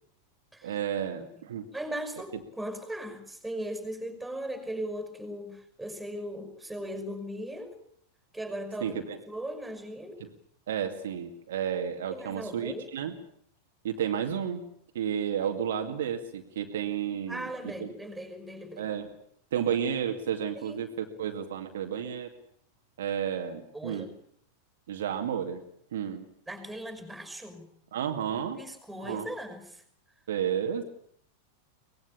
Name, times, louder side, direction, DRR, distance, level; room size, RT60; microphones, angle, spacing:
voice 1, 0.6-1.7 8.8-9.2 10.7-13.1 13.8-14.6 14.9-17.9 18.8-19.1 19.5-22.3 23.0-24.1 24.9-25.6 25.9-26.3 27.9-28.6 29.0-29.3 30.3-30.8, right 8 dB, 60° right, 4 dB, 2.3 m, -32 dB
voice 2, 1.7-7.8 8.3-9.0 9.3-10.2 12.1-12.9 17.3-18.8 19.6-19.7 20.6-20.8 23.7-24.1 26.5-27.7 28.6-29.8, right 1 dB, 5° right, 8 dB, 5.6 m, -38 dB
24.0 x 20.0 x 8.6 m, 0.67 s
figure-of-eight pair, 90°, 0 cm